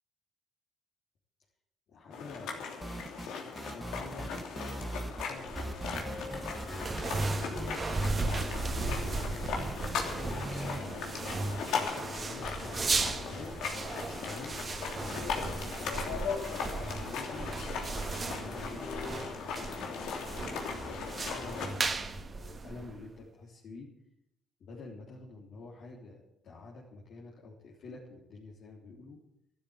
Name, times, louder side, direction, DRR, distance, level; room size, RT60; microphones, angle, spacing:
voice 1, 1.9-3.1 3.5-5.5 6.8-7.8 8.6-9.8 10.4-13.5 14.2-17.6 18.3-23.9 24.6-29.2, left 3 dB, 70° left, -5 dB, 3.6 m, -48 dB
sound 1, 2.1-21.7, left 5 dB, 90° left, 3.0 m, -38 dB
sound 2, 2.8-3.3 3.6-5.3 5.6-10.8, right 2 dB, 15° right, 0.9 m, -40 dB
sound 3, 5.3-23.2, right 3 dB, 35° right, 1.6 m, -36 dB
12.5 x 12.0 x 8.8 m, 0.78 s
cardioid pair, 90°, 0 cm